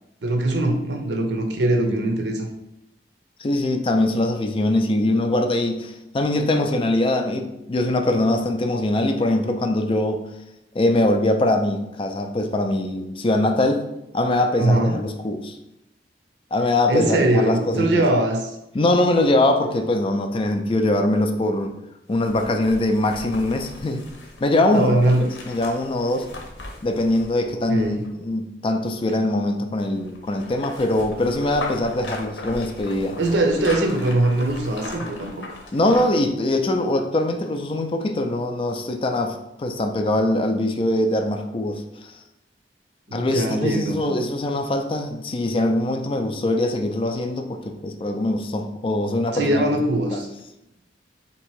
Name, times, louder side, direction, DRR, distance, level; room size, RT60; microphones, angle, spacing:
voice 1, 0.2-2.5 14.6-15.0 16.9-18.5 24.7-25.2 27.7-28.0 33.2-35.3 43.1-44.0 49.3-50.3, right 1 dB, 70° right, 4 dB, 0.7 m, -21 dB
voice 2, 3.4-10.2 10.7-13.8 14.1-15.6 16.5-17.9 18.7-21.7 22.1-24.0 24.4-25.2 25.5-26.3 26.8-33.2 35.7-41.8 43.1-49.7 50.1-50.2, left 1 dB, 30° left, 5 dB, 0.4 m, -22 dB
sound 1, 22.1-28.3 29.9-36.3 36.6-36.7, left 2 dB, 80° left, 0.8 m, -38 dB
3.5 x 2.9 x 4.5 m, 0.87 s
head